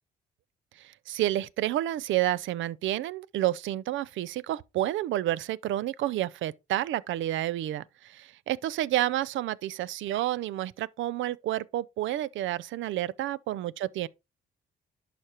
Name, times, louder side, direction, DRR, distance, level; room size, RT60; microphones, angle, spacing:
voice 1, 1.1-14.1, right 14 dB, 75° right, 0.5 m, -30 dB
11.0 x 5.0 x 2.9 m
cardioid pair, 90°, 20 cm